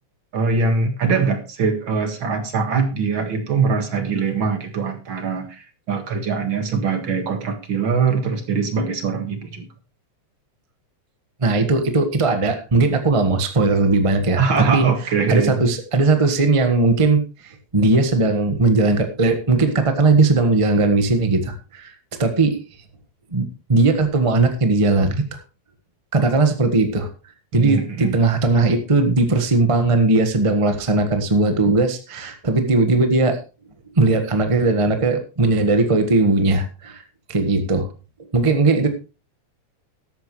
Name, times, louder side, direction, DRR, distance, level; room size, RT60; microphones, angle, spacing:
voice 1, 0.3-9.7 14.4-15.6 27.5-28.2, right 5 dB, 45° right, 6 dB, 2.3 m, -22 dB
voice 2, 11.4-14.4 14.7-14.8 15.3-21.9 22.2-22.6 23.3-25.4 26.1-27.1 27.5-33.4 33.9-37.0 37.3-37.9 38.3-38.9, right 3 dB, 30° right, 6 dB, 0.6 m, -18 dB
14.0 x 11.5 x 3.2 m, 0.31 s
omnidirectional pair, 3.3 m